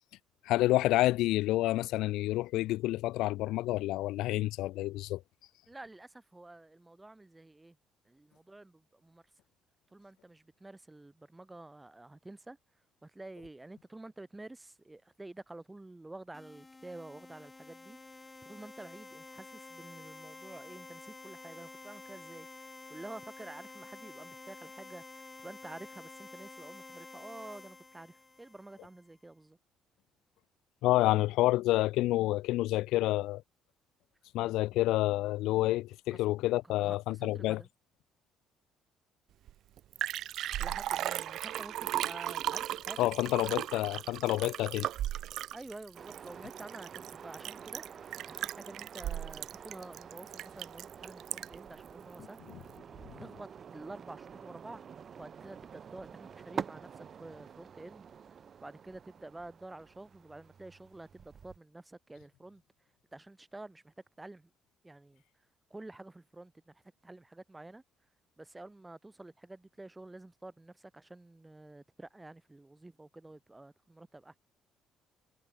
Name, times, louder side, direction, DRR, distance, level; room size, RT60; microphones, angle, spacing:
voice 1, 0.4-5.2 30.8-33.4 34.3-37.6 43.0-44.9, left 17 dB, 85° left, 0.5 m, -28 dB
voice 2, 5.7-7.8 8.0-9.2 9.9-12.6 13.0-22.5 22.9-29.6 36.1-36.2 36.6-37.7 40.6-43.1 45.5-47.8 48.3-52.4 53.2-58.1 58.6-62.6 63.1-64.5 64.8-65.2 65.7-67.8 68.4-74.3, right 2 dB, 10° right, 5.0 m, -49 dB
sound 1, 16.3-29.0, left 3 dB, 15° left, 1.4 m, -50 dB
Liquid, 39.5-39.6 39.8-51.7 52.1-52.2, right 12 dB, 65° right, 0.4 m, -36 dB
sound 2, 45.9-61.6, right 7 dB, 35° right, 1.7 m, -48 dB
cardioid pair, 145°, 0 cm